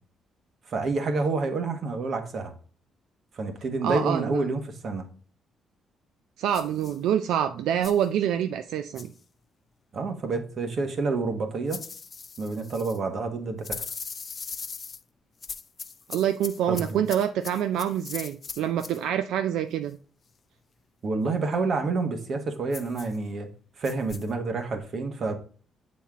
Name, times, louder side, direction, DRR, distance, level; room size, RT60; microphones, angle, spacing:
voice 1, 0.7-2.5 3.3-5.0 9.9-11.8 12.4-13.8 16.7-17.0 21.0-23.5 23.8-25.4, right 3 dB, 55° right, 1.3 m, -28 dB
voice 2, 3.8-4.5 6.4-9.1 16.1-20.0, right 10 dB, 85° right, 0.4 m, -26 dB
sound 1, 6.5-7.0 7.8-8.1 9.0-9.2 11.7-13.0 13.6-15.0 15.4-19.0 22.7-23.2 23.8-24.3, left 5 dB, 40° left, 0.5 m, -39 dB
7.2 x 4.3 x 3.6 m
cardioid pair, 90°, 0 cm